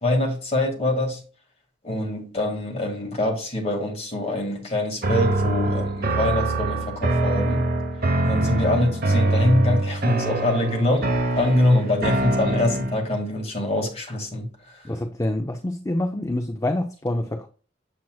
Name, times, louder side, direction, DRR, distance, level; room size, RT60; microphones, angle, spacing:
voice 1, 0.0-1.2 1.8-7.6 8.2-14.8, left 1 dB, 35° left, 2.0 m, -24 dB
sound 1, 5.0-13.1, right 2 dB, 50° right, 1.1 m, -24 dB
voice 2, 14.8-17.5, left 1 dB, 15° left, 0.5 m, -26 dB
7.5 x 7.3 x 2.3 m
head